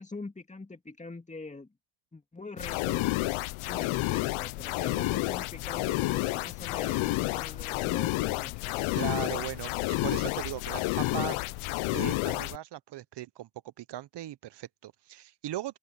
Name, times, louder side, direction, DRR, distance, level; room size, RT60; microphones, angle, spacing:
voice 1, 0.0-1.7 2.1-3.1 3.6-8.8, left 3 dB, 15° left, 2.5 m, -44 dB
sound 1, 2.6-12.6, left 20 dB, 75° left, 0.9 m, -30 dB
voice 2, 9.0-11.5 11.9-13.5 13.8-15.8, right 13 dB, 55° right, 1.1 m, -38 dB
open air
supercardioid pair, 70°, 49 cm